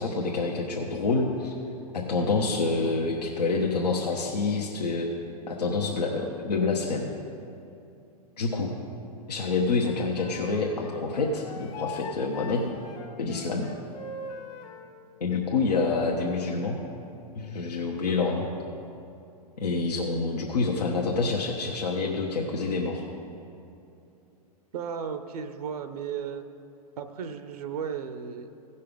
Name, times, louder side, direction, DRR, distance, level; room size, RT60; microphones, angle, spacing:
voice 1, 0.0-1.5 1.9-5.1 5.5-7.1 8.4-8.7 9.3-12.6 13.2-13.7 15.2-16.8 17.3-18.5 19.6-23.0, left 3 dB, 85° left, -2 dB, 1.0 m, -27 dB
Wind instrument woodwind instrument, 9.8-14.9, left 3 dB, 55° left, 1.6 m, -41 dB
voice 2, 24.7-26.4 27.0-28.5, right 7 dB, 70° right, 9 dB, 0.8 m, -34 dB
16.5 x 5.6 x 5.1 m, 2.8 s
hypercardioid pair, 110°, 20 cm